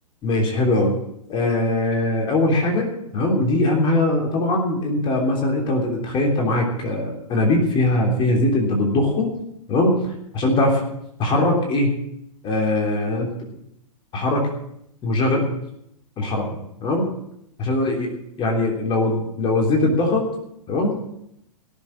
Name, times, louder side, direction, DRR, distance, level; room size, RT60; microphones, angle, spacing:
voice 1, 0.2-0.9 1.3-9.3 9.7-10.0 10.3-10.8 11.2-12.0 12.4-13.3 14.1-14.5 15.0-15.5 16.2-16.4 16.8-17.1 17.6-18.1 18.4-20.3 20.7-21.0, left 2 dB, 25° left, 0 dB, 3.4 m, -21 dB
17.5 x 7.4 x 7.5 m, 0.77 s
hypercardioid pair, 115°, 19 cm